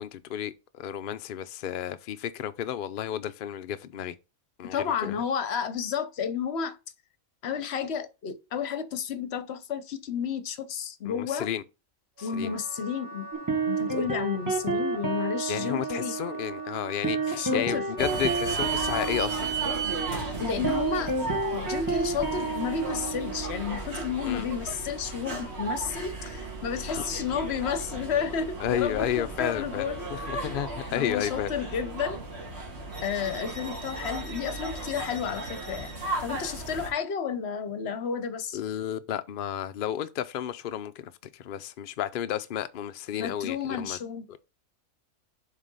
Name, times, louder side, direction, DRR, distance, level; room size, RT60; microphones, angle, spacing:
voice 1, 0.0-4.1 4.6-5.1 11.0-11.6 12.2-12.6 15.5-19.5 24.2-24.5 26.9-27.0 28.6-31.5 38.5-44.0, left 10 dB, 75° left, 0.4 m, -32 dB
voice 2, 4.6-6.8 7.4-11.5 12.2-13.3 13.7-16.2 17.4-17.9 20.4-21.2 21.5-30.0 30.9-32.2 33.0-35.9 36.2-38.6 43.1-44.3, left 7 dB, 55° left, 0.9 m, -31 dB
Wind instrument woodwind instrument, 12.2-18.7, right 1 dB, 65° right, 1.8 m, -44 dB
sound 1, 13.3-23.6, right 3 dB, 15° right, 1.2 m, -31 dB
sound 2, 18.0-36.9, right 3 dB, 50° right, 2.0 m, -35 dB
7.3 x 3.7 x 5.3 m
omnidirectional pair, 1.5 m